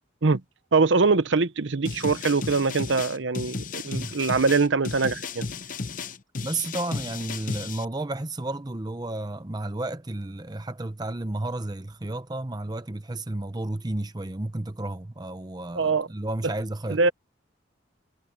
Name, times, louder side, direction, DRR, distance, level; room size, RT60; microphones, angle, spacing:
voice 1, 0.7-5.5 15.7-16.1 16.9-17.1, right 4 dB, 80° right, 0.8 m, -23 dB
sound 1, 1.9-7.9, left 4 dB, 45° left, 0.8 m, -34 dB
voice 2, 6.4-17.1, right 2 dB, 20° right, 0.8 m, -32 dB
head